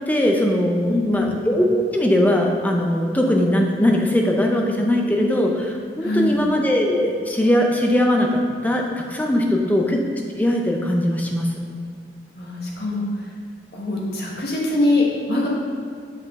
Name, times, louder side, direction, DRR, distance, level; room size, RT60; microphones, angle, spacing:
voice 1, 0.1-10.0 10.4-11.5, left 1 dB, 10° left, 1 dB, 0.5 m, -20 dB
voice 2, 0.9-1.3 6.0-6.4 9.4-9.8 12.3-13.3 13.7-15.5, left 2 dB, 60° left, -3 dB, 1.2 m, -23 dB
5.9 x 5.6 x 3.6 m, 2.4 s
head